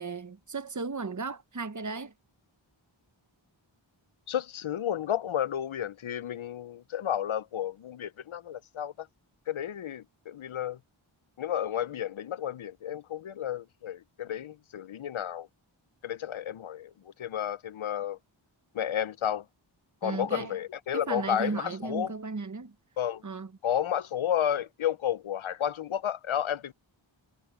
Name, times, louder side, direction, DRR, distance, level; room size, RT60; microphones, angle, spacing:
voice 1, 0.0-2.1 20.0-20.6 20.9-22.7 23.2-23.5, right 4 dB, 40° right, 1.0 m, -35 dB
voice 2, 4.3-9.1 9.5-10.8 11.4-15.5 16.0-18.2 18.7-19.4 20.0-22.1 23.0-23.2 23.6-26.7, left 10 dB, 80° left, 0.6 m, -32 dB
wide cardioid pair, 50°, 47 cm